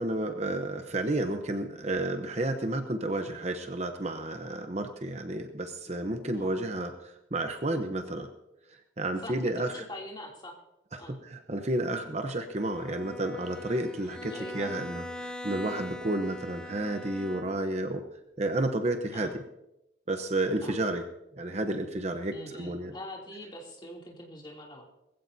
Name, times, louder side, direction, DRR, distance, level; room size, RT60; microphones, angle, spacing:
voice 1, 0.0-8.3 9.0-9.8 10.9-18.0 18.4-19.4 20.1-21.0 21.4-22.9, right 1 dB, 35° right, 7 dB, 0.8 m, -31 dB
voice 2, 9.2-10.6 11.0-11.2 14.0-14.7 19.1-19.3 20.6-20.8 22.3-24.8, left 1 dB, 25° left, -1 dB, 2.9 m, -43 dB
Bowed string instrument, 12.5-17.8, left 1 dB, 5° left, 0.7 m, -41 dB
20.5 x 15.5 x 2.8 m, 0.88 s
head